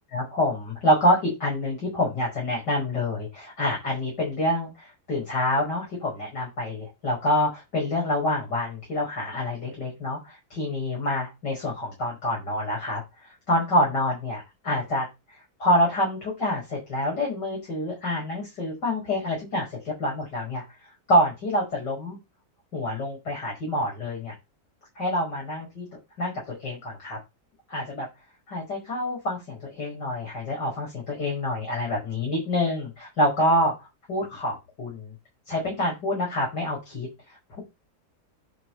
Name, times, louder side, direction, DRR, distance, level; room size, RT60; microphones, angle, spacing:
voice 1, 0.1-15.1 15.6-20.6 21.1-22.2 22.7-24.3 25.0-25.8 26.2-27.2 27.7-28.1 28.5-33.7 34.1-35.1 35.5-37.6, left 1 dB, 90° left, -3 dB, 6.6 m, -27 dB
11.0 x 5.4 x 5.8 m, 0.23 s
omnidirectional pair, 1.8 m